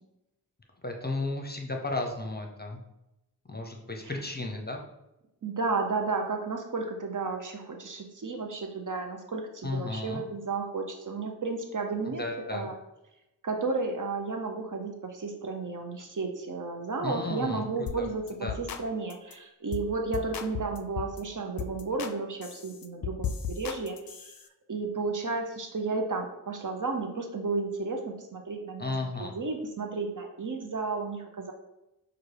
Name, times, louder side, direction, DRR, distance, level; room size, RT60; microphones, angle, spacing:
voice 1, 0.8-2.8 3.4-4.8 9.6-10.2 12.1-12.7 17.0-18.1 18.4-18.6 28.8-29.4, left 2 dB, 25° left, 2 dB, 0.7 m, -34 dB
voice 2, 5.4-12.7 13.4-24.3 24.7-28.9 29.2-31.5, right 3 dB, 50° right, 3 dB, 0.7 m, -33 dB
sound 1, 17.9-18.0 18.3-18.8 19.1-19.3 19.7-19.9 20.1-21.2 21.6-22.1 22.4-24.4, left 7 dB, 65° left, 0.5 m, -36 dB
5.9 x 2.4 x 3.3 m, 0.92 s
wide cardioid pair, 45°, 39 cm